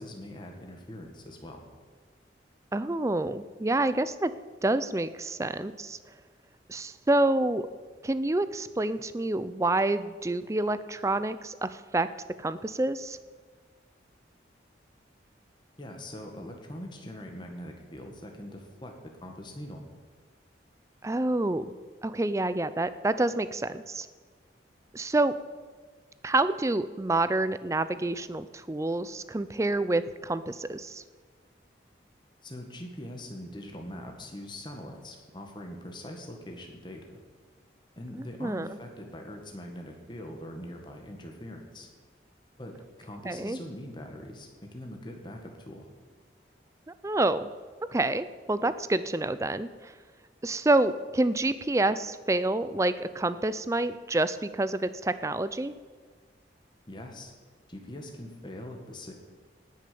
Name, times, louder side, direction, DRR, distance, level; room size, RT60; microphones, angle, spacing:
voice 1, 0.0-1.6 15.8-18.9 19.2-19.8 32.4-37.2 38.0-41.9 42.6-42.7 43.0-45.9 56.9-57.3 57.7-59.1, left 1 dB, 25° left, 2 dB, 1.7 m, -42 dB
voice 2, 2.7-4.3 4.6-6.0 6.7-7.7 8.0-12.1 12.4-13.2 21.0-21.7 22.0-24.1 24.9-25.3 26.2-31.0 38.2-38.7 43.2-43.6 47.0-47.5 47.9-49.7 50.4-55.7, right 2 dB, 15° right, 14 dB, 0.4 m, -28 dB
18.0 x 6.5 x 7.0 m, 1.5 s
head